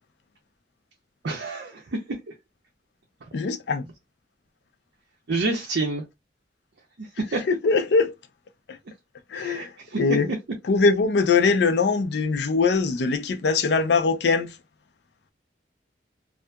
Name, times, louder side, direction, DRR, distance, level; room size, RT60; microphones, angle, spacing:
voice 1, 1.2-1.8 5.3-6.0 7.0-7.4 9.3-10.2, right 3 dB, 75° right, 0.6 m, -28 dB
voice 2, 3.3-3.9 7.5-8.1 8.7-8.8 9.3-9.7 10.0-10.3 10.7-14.6, left 4 dB, 70° left, 0.4 m, -22 dB
2.7 x 2.3 x 2.2 m
head